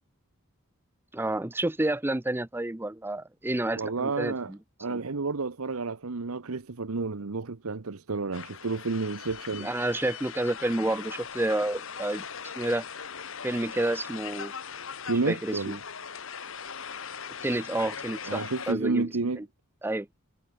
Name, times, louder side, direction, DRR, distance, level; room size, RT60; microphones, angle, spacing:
voice 1, 1.1-4.6 9.6-12.2 12.6-12.8 13.4-14.5 15.3-15.7 17.4-19.1 19.4-19.5 19.8-20.1, right 1 dB, 10° right, 0.5 m, -29 dB
voice 2, 3.7-4.5 4.8-9.7 15.1-15.8 18.3-19.4, right 3 dB, 80° right, 0.9 m, -30 dB
sound 1, 8.3-18.7, left 6 dB, 65° left, 1.5 m, -40 dB
head